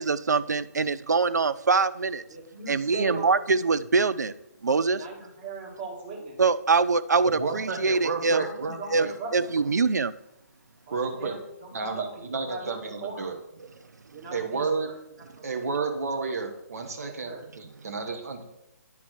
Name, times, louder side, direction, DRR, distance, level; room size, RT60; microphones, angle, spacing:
voice 1, 0.0-2.2 2.7-4.3 4.6-5.0 6.4-8.4 8.9-10.1, right 4 dB, 80° right, 14 dB, 0.4 m, -24 dB
voice 2, 2.3-3.6 4.9-6.4 8.3-9.5 10.9-13.3 14.1-14.7 15.3-15.5 15.8-15.9 17.0-17.4, right 3 dB, 35° right, -2 dB, 2.1 m, -39 dB
voice 3, 7.2-9.4 10.9-11.4 11.7-13.7 14.3-14.9 15.4-18.4, right 4 dB, 60° right, 3 dB, 1.3 m, -32 dB
10.0 x 4.1 x 4.5 m, 0.88 s
figure-of-eight pair, 135°, 9 cm